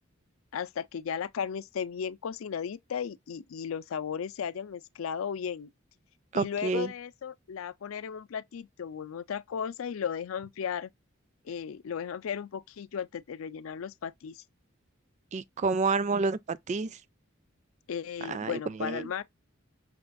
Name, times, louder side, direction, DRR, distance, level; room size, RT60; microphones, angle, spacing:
voice 1, 0.5-5.7 6.3-10.9 11.4-14.4 17.9-19.2, left 7 dB, 85° left, 0.4 m, -35 dB
voice 2, 6.3-6.9 15.3-17.0 18.3-19.1, right 4 dB, 35° right, 0.3 m, -29 dB
5.9 x 2.3 x 2.4 m
head